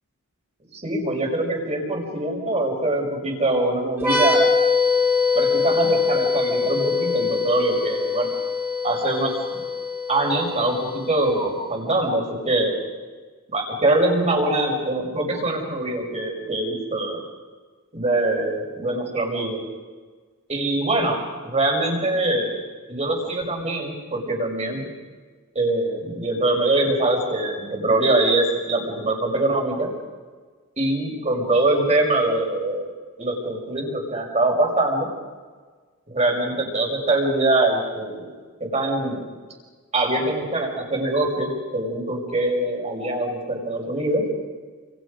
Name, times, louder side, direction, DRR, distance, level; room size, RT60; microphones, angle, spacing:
voice 1, 0.7-4.5 5.3-8.3 8.8-9.6 10.1-12.8 13.5-17.2 17.9-19.6 20.5-22.5 22.9-24.9 25.5-29.9 30.8-32.9 33.2-35.1 36.1-39.3 39.9-44.3, right 2 dB, 30° right, 1 dB, 5.9 m, -23 dB
sound 1, 4.0-11.5, left 5 dB, 10° right, 4.4 m, -23 dB
29.0 x 27.5 x 5.3 m, 1.4 s
head